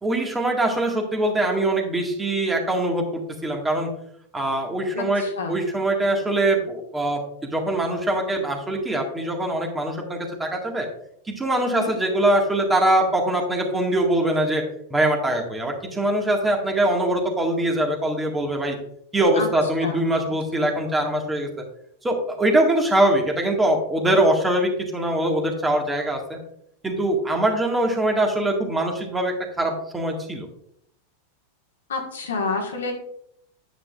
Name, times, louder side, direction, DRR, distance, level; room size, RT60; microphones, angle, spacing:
voice 1, 0.0-3.9 4.3-10.9 11.3-14.6 14.9-18.8 19.1-21.5 22.0-26.4 26.8-30.5, right 1 dB, 10° right, 2 dB, 1.8 m, -23 dB
voice 2, 4.9-5.6 11.5-11.9 19.3-19.5 19.8-20.0 20.6-20.7 31.9-32.9, left 4 dB, 65° left, 2 dB, 1.6 m, -29 dB
9.5 x 9.3 x 2.4 m, 0.70 s
figure-of-eight pair, 90°, 0 cm